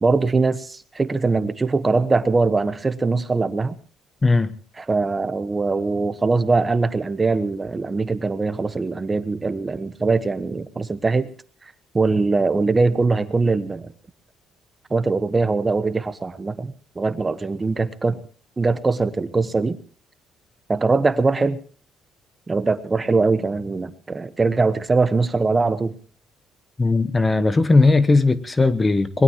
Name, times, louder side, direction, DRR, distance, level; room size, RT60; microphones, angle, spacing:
voice 1, 0.0-3.7 4.8-11.3 11.9-13.9 14.9-18.2 18.6-19.8 20.7-21.6 22.5-25.9, right 3 dB, 20° right, 1.2 m, -21 dB
voice 2, 4.2-4.6 26.8-29.2, left 3 dB, 20° left, 1.0 m, -17 dB
22.5 x 21.0 x 3.0 m
cardioid pair, 125°, 0 cm